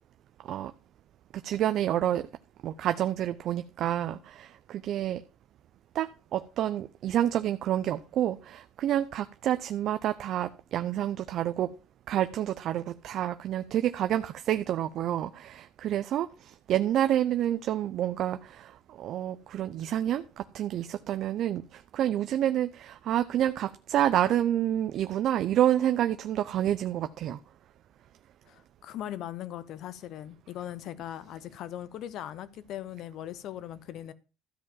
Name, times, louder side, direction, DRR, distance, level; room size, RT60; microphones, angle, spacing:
voice 1, 1.4-2.3 2.6-5.2 5.9-11.7 12.1-27.4, right 11 dB, 55° right, 0.5 m, -28 dB
voice 2, 28.5-34.1, left 11 dB, 60° left, 0.9 m, -39 dB
13.5 x 4.7 x 7.4 m
cardioid pair, 135°, 0 cm